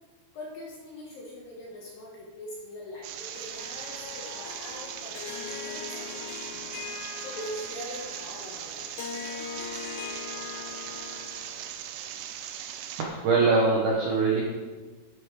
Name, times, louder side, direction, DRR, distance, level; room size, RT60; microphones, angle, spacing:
voice 1, 0.3-8.9, left 1 dB, 60° left, -3 dB, 2.6 m, -42 dB
sound 1, 3.0-13.0, right 10 dB, 90° right, 2.4 m, -39 dB
Harp, 3.3-11.8, left 8 dB, 85° left, 3.1 m, -41 dB
voice 2, 13.0-14.4, right 3 dB, 70° right, -3 dB, 2.0 m, -23 dB
12.0 x 8.5 x 5.0 m, 1.4 s
omnidirectional pair, 5.7 m